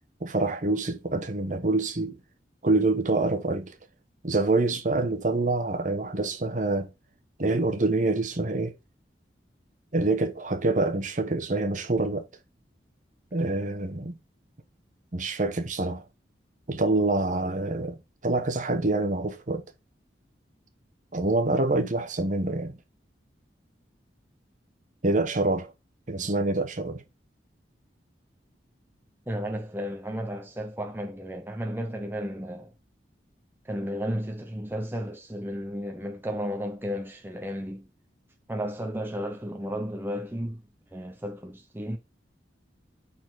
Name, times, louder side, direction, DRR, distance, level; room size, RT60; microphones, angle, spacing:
voice 1, 0.2-2.2 2.6-3.8 4.2-6.9 7.4-8.7 9.9-12.3 13.3-14.2 15.1-16.0 16.7-19.6 21.1-22.8 25.0-25.7 26.1-27.0, right 2 dB, 45° right, 1.1 m, -26 dB
voice 2, 29.3-32.7 33.6-37.9 38.5-40.6 40.9-42.0, equal, 10° right, 0.7 m, -33 dB
6.7 x 4.2 x 4.1 m
head